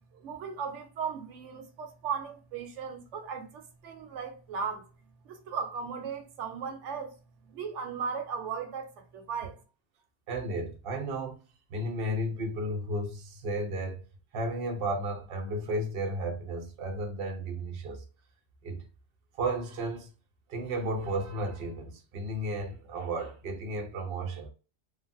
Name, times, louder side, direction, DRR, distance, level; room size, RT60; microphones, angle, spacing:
voice 1, 0.2-4.9 5.2-7.1 7.4-9.6, right 6 dB, 85° right, 1.0 m, -37 dB
voice 2, 10.3-11.4 11.7-14.0 14.3-18.0 18.6-18.8 19.4-20.1 20.5-24.5, right 1 dB, 60° right, 0.9 m, -33 dB
3.2 x 2.2 x 2.5 m
omnidirectional pair, 1.2 m